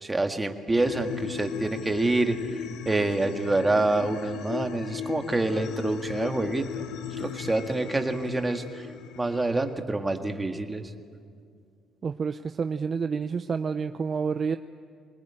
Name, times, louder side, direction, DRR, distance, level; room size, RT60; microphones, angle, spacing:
voice 1, 0.0-6.7 7.2-8.9 9.2-10.9, right 2 dB, 15° right, 5 dB, 1.8 m, -27 dB
sound 1, 0.8-9.7, left 8 dB, 80° left, 1.1 m, -37 dB
voice 2, 12.0-14.6, right 5 dB, 40° right, 8 dB, 0.6 m, -29 dB
24.5 x 20.5 x 8.9 m, 2.2 s
cardioid pair, 110°, 0 cm